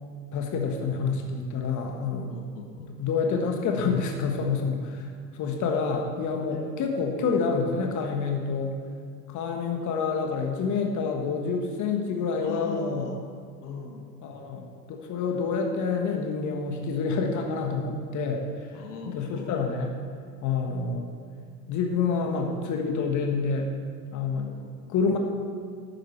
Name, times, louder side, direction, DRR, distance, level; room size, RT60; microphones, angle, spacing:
voice 1, 0.3-2.3 3.0-5.1 5.3-8.7 9.3-13.1 14.2-18.4 19.1-20.0 20.4-21.1 21.7-23.7 24.1-24.5 24.9-25.2, left 5 dB, 35° left, 3 dB, 1.6 m, -28 dB
voice 2, 2.3-3.0 6.5-6.7 12.3-13.2 13.6-14.2 18.7-19.8 24.5-24.9, left 4 dB, 70° left, 3 dB, 1.9 m, -41 dB
13.5 x 11.0 x 4.6 m, 2.1 s
figure-of-eight pair, 80°, 48 cm